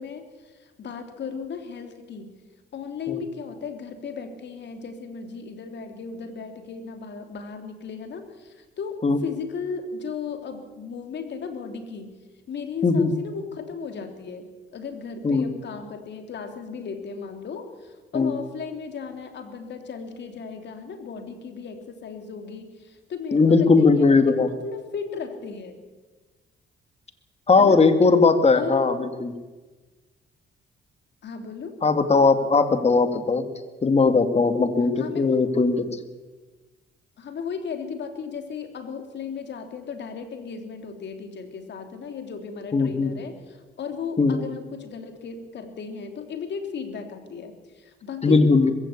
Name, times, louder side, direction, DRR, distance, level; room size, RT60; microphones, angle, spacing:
voice 1, 0.0-2.3 2.7-12.2 12.5-25.8 27.6-27.8 28.5-29.0 31.2-31.8 35.0-35.3 37.2-48.5, left 5 dB, 65° left, 6 dB, 3.2 m, -35 dB
voice 2, 23.3-24.5 27.5-29.3 31.8-33.4 33.8-35.8 42.7-43.1 44.2-44.4 48.2-48.7, left 4 dB, 30° left, 9 dB, 2.2 m, -19 dB
21.0 x 16.0 x 8.5 m, 1.3 s
cardioid pair, 90°, 20 cm